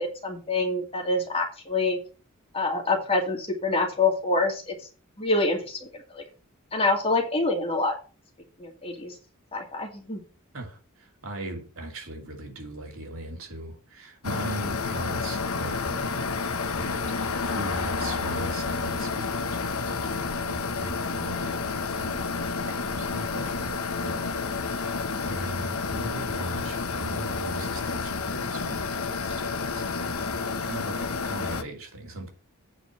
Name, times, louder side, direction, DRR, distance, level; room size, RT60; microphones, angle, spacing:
voice 1, 0.0-2.0 2.5-4.7 5.2-5.8 6.1-6.2 6.7-7.9 8.6-9.1 9.5-10.2, left 2 dB, 25° left, 2.5 m, -26 dB
voice 2, 10.5-16.4 16.7-32.3, right 1 dB, 70° right, 2.9 m, -39 dB
sound 1, 14.2-31.6, left 4 dB, 85° left, 1.1 m, -30 dB
8.9 x 4.9 x 7.7 m
head